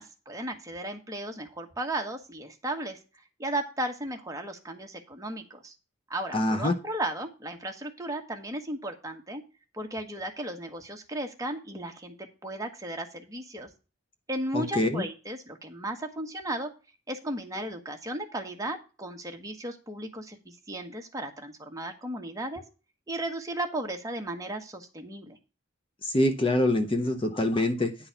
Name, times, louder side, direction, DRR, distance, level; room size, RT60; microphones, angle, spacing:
voice 1, 0.0-3.0 3.4-5.7 6.1-9.4 9.7-13.7 14.3-16.7 17.1-22.6 23.1-25.4, right 1 dB, 15° right, 1.2 m, -35 dB
voice 2, 6.3-6.7 14.5-15.1 26.0-28.0, left 1 dB, 25° left, 0.7 m, -25 dB
10.0 x 4.0 x 6.9 m
head